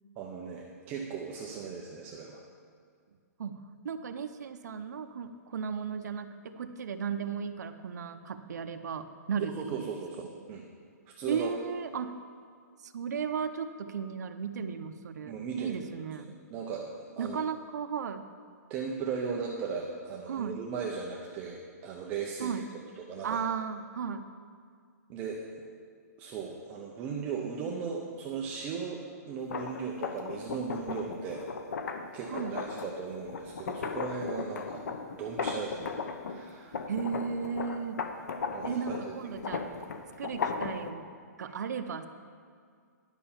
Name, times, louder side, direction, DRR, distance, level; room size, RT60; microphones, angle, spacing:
voice 1, 0.2-2.4 9.5-10.6 11.1-11.5 15.3-16.0 16.5-16.9 17.2-17.4 18.7-22.6 23.0-23.4 25.1-25.4 26.2-31.4 32.1-34.8 35.1-36.0 36.2-36.8 38.5-39.1, right 5 dB, 20° right, -1 dB, 0.6 m, -37 dB
voice 2, 3.4-9.8 10.2-10.3 11.3-12.2 12.8-16.4 17.2-18.3 20.3-20.6 22.4-22.7 23.2-24.3 32.3-32.7 36.9-38.0 38.6-39.7 40.2-41.1 41.4-42.1, right 6 dB, 75° right, 7 dB, 0.7 m, -35 dB
sound 1, 29.4-36.4 36.7-40.9, left 5 dB, 70° left, 0.9 m, -36 dB
11.0 x 5.6 x 7.1 m, 2.1 s
hypercardioid pair, 170°, 9 cm